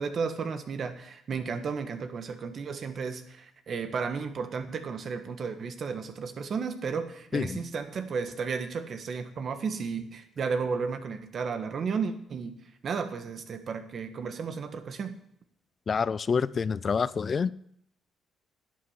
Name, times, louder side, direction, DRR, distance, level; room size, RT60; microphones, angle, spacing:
voice 1, 0.0-12.6 12.8-15.2, right 5 dB, 55° right, 8 dB, 1.5 m, -33 dB
voice 2, 15.9-17.5, left 5 dB, 40° left, 18 dB, 0.4 m, -27 dB
11.0 x 8.7 x 7.5 m, 0.71 s
cardioid pair, 90°, 0 cm